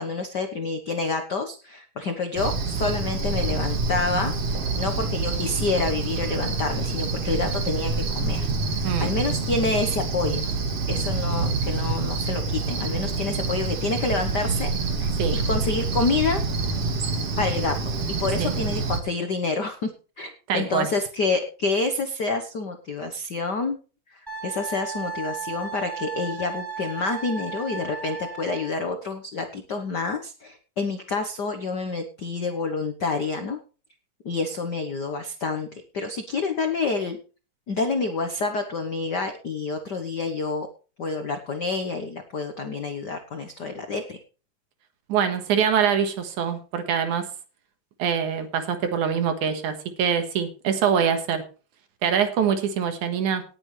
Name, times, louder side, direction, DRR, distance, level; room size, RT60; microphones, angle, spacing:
voice 1, 0.0-10.5 10.9-14.7 15.0-16.4 17.4-19.9 20.2-23.8 24.1-33.6 34.2-37.2 37.7-40.7 41.0-44.2, left 3 dB, 85° left, 6 dB, 0.9 m, -28 dB
Cricket, 2.4-19.0, right 3 dB, 50° right, 2.6 m, -27 dB
voice 2, 20.5-20.9 45.1-47.3 48.0-51.4 52.0-53.4, right 7 dB, 70° right, 7 dB, 2.8 m, -24 dB
Wind instrument woodwind instrument, 24.3-28.7, right 5 dB, 5° right, 5.0 m, -35 dB
18.5 x 8.8 x 3.3 m, 0.35 s
omnidirectional pair, 3.7 m